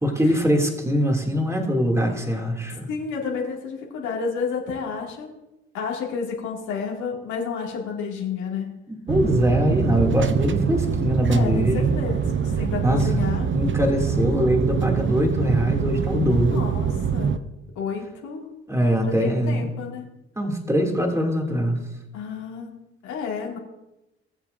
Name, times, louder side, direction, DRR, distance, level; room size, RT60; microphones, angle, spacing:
voice 1, 0.0-2.9 9.1-11.9 12.8-16.7 18.7-19.7 20.4-21.8, equal, 10° right, 1 dB, 2.6 m, -22 dB
voice 2, 2.9-5.3 5.7-8.8 11.3-13.5 16.3-17.4 17.8-18.5 19.2-20.0 22.1-23.6, left 5 dB, 80° left, -2 dB, 2.3 m, -31 dB
sound 1, 9.1-17.4, right 7 dB, 40° right, 0.7 m, -24 dB
19.5 x 7.2 x 2.6 m, 0.95 s
hypercardioid pair, 45°, 29 cm